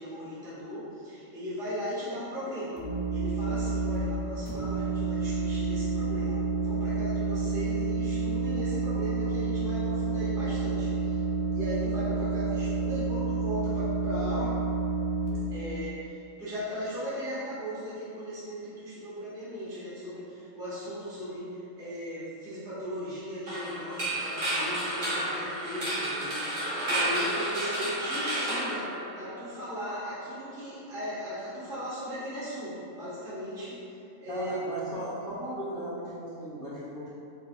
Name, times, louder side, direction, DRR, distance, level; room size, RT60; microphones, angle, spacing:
voice 1, 0.0-2.8 3.1-11.2 11.5-14.5 15.5-34.8, equal, 5° right, -11 dB, 0.8 m, -37 dB
sound 1, 2.8-4.0 4.5-15.3, right 3 dB, 50° left, 0.6 m, -29 dB
sound 2, 23.5-29.5, right 1 dB, 65° right, 1.2 m, -31 dB
voice 2, 34.3-37.1, equal, 40° right, -12 dB, 1.3 m, -36 dB
4.8 x 2.8 x 2.2 m, 2.6 s
omnidirectional pair, 1.4 m